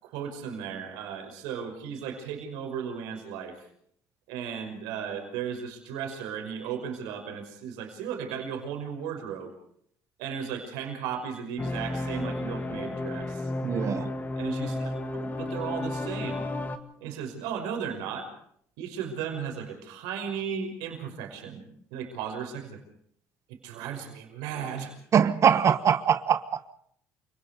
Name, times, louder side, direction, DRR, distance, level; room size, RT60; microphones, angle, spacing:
voice 1, 0.0-3.6 4.3-9.5 10.2-13.5 14.4-16.5 17.0-18.3 18.8-21.6 21.9-22.8 23.5-24.9, right 7 dB, 90° right, 4 dB, 5.7 m, -35 dB
sound 1, 11.6-16.8, left 2 dB, 25° left, 2.2 m, -32 dB
voice 2, 13.6-14.1 25.1-26.7, right 8 dB, 50° right, 13 dB, 1.3 m, -23 dB
29.0 x 19.0 x 5.0 m, 0.64 s
supercardioid pair, 90°, 7 cm